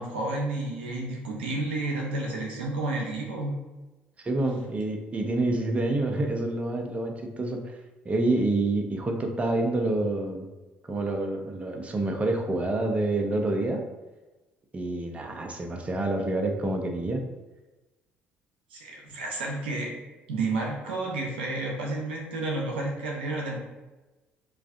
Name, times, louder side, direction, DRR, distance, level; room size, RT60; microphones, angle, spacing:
voice 1, 0.0-3.5 18.7-20.0 20.3-23.6, right 2 dB, 85° right, -2 dB, 0.5 m, -31 dB
voice 2, 4.2-7.8 8.0-10.5 10.9-13.8 14.7-17.2, right 2 dB, 25° right, 3 dB, 0.4 m, -27 dB
2.4 x 2.4 x 2.4 m, 1.1 s
hypercardioid pair, 55°, 5 cm